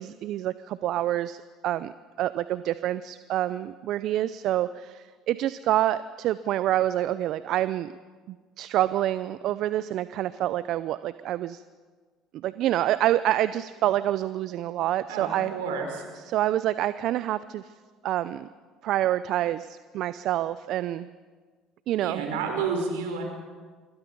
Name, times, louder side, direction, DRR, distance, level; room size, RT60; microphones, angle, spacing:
voice 1, 0.0-7.9 8.3-11.6 12.4-15.5 16.3-17.7 18.0-18.5 18.8-21.1 21.9-22.2, right 13 dB, 60° right, 15 dB, 0.6 m, -27 dB
voice 2, 15.1-16.0 22.0-23.2, right 5 dB, 80° right, 3 dB, 5.0 m, -30 dB
26.0 x 23.0 x 5.4 m, 1.5 s
hypercardioid pair, 65°, 0 cm